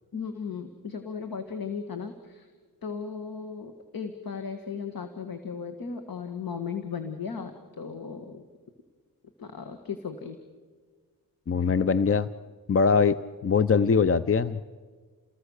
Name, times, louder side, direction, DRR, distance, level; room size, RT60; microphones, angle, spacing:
voice 1, 0.1-2.5 2.8-7.5 7.8-8.4 9.4-10.4, left 6 dB, 70° left, 6 dB, 1.9 m, -36 dB
voice 2, 11.5-12.3 12.7-13.2 13.4-14.6, left 5 dB, 40° left, 14 dB, 0.7 m, -22 dB
29.5 x 20.0 x 6.5 m, 1.5 s
cardioid pair, 75°, 36 cm